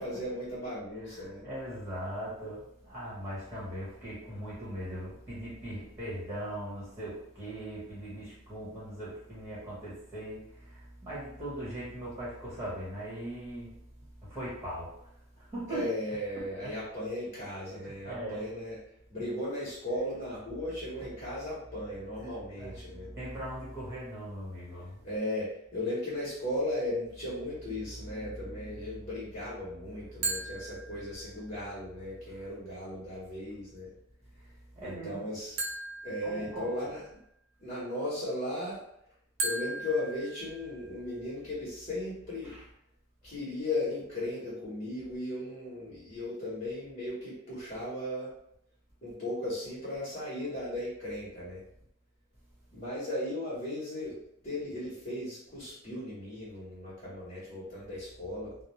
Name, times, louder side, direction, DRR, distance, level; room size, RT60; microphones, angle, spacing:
voice 1, 0.0-1.4 15.7-18.8 19.1-23.1 25.0-33.9 34.8-35.6 36.0-37.2 37.6-38.8 39.4-42.5 43.2-48.3 49.0-51.6 52.7-54.2 54.4-58.5, left 1 dB, 40° left, -11 dB, 1.1 m, -36 dB
voice 2, 1.1-13.8 14.3-14.9 15.4-15.9 16.3-16.7 17.7-18.5 22.6-25.0 27.9-29.0 30.1-30.4 32.3-32.4 34.7-35.3 36.2-36.7 42.4-42.6, right 1 dB, 15° right, -8 dB, 1.1 m, -40 dB
sound 1, 30.2-31.5 35.6-37.1 39.4-41.1, right 2 dB, 75° right, 0.6 m, -37 dB
2.5 x 2.0 x 3.1 m, 0.76 s
head